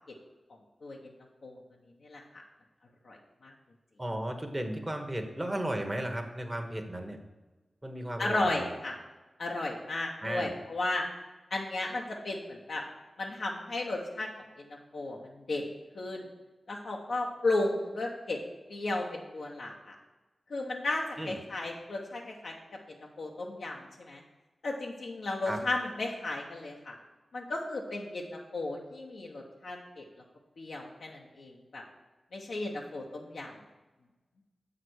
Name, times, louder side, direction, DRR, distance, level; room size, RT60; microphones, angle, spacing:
voice 1, 4.0-7.2 7.8-8.6 10.2-10.5 21.2-21.4 25.4-25.6, right 1 dB, 20° right, 3 dB, 1.1 m, -35 dB
voice 2, 8.2-9.0 9.4-11.1 11.5-12.8 13.2-14.3 14.6-14.7 14.9-15.6 15.9-16.3 16.7-18.4 18.7-19.9 20.5-22.5 22.9-24.2 24.6-26.9 27.3-30.0 30.6-31.8 32.3-33.5, left 2 dB, 80° left, -2 dB, 0.9 m, -34 dB
7.4 x 5.0 x 6.3 m, 1.2 s
cardioid pair, 55°, 0 cm